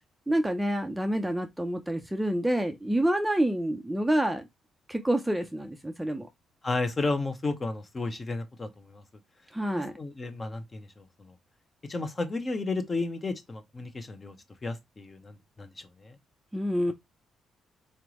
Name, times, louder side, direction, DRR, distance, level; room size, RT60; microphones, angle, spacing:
voice 1, 0.3-4.5 4.9-6.3 9.5-9.9 16.5-16.9, right 1 dB, 10° right, 0.6 m, -27 dB
voice 2, 6.6-9.0 10.0-11.3 11.8-14.4 14.6-15.7 16.0-16.2, left 3 dB, 30° left, 1.0 m, -33 dB
3.9 x 3.3 x 3.0 m
cardioid pair, 90°, 0 cm